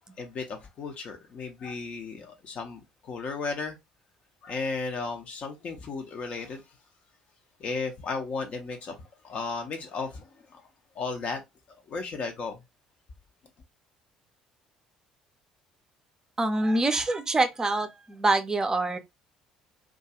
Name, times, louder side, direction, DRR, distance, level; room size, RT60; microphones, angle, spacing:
voice 1, 0.2-3.8 4.4-6.8 7.6-9.0 9.2-10.7 10.9-11.4 11.7-12.6, left 4 dB, 45° left, 0.5 m, -35 dB
voice 2, 16.4-19.0, right 2 dB, 20° right, 0.5 m, -25 dB
2.3 x 2.3 x 2.8 m
figure-of-eight pair, 55°, 3 cm